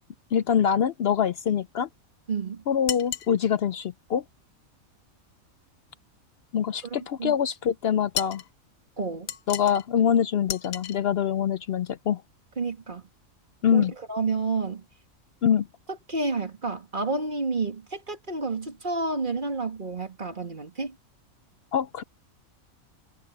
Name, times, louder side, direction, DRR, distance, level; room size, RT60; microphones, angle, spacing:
voice 1, 0.3-1.9 2.7-4.2 6.5-8.4 9.5-12.2 13.6-13.9 15.4-15.7 21.7-22.0, left 8 dB, 60° left, 0.6 m, -24 dB
voice 2, 2.3-2.6 6.8-7.4 9.0-9.3 12.6-13.0 13.7-14.8 16.1-20.9, right 3 dB, 35° right, 2.0 m, -30 dB
sound 1, 2.9-3.3 8.1-8.5 9.3-9.9 10.5-11.0, left 9 dB, 80° left, 1.3 m, -33 dB
omnidirectional pair, 1.4 m